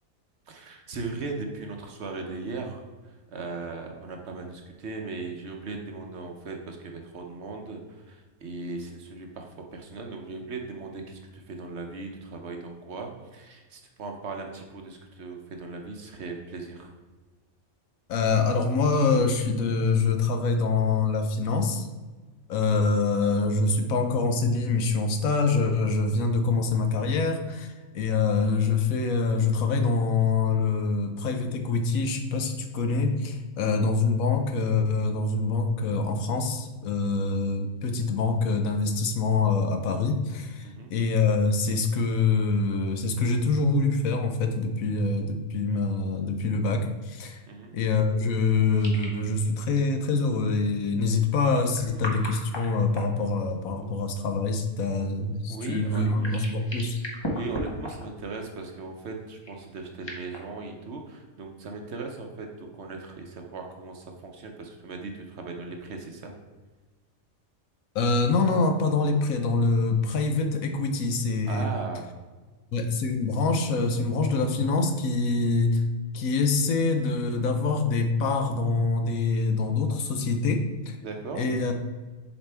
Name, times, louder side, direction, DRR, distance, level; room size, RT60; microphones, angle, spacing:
voice 1, 0.5-16.9 37.0-37.3 40.6-40.9 47.5-47.8 53.8-53.9 55.5-56.1 57.3-66.3 71.5-72.0 72.9-73.0 81.0-81.4, right 3 dB, 55° right, 3 dB, 0.9 m, -38 dB
voice 2, 18.1-21.9 22.5-47.4 47.7-57.0 67.9-71.7 72.7-75.8 76.1-81.0 81.4-81.7, left 3 dB, 75° left, 5 dB, 1.1 m, -25 dB
sound 1, 48.8-49.2 49.7-49.8 51.6-53.7 55.6-58.3 59.4-60.4, left 1 dB, 20° left, 0.9 m, -36 dB
7.0 x 4.3 x 3.3 m, 1.3 s
omnidirectional pair, 1.5 m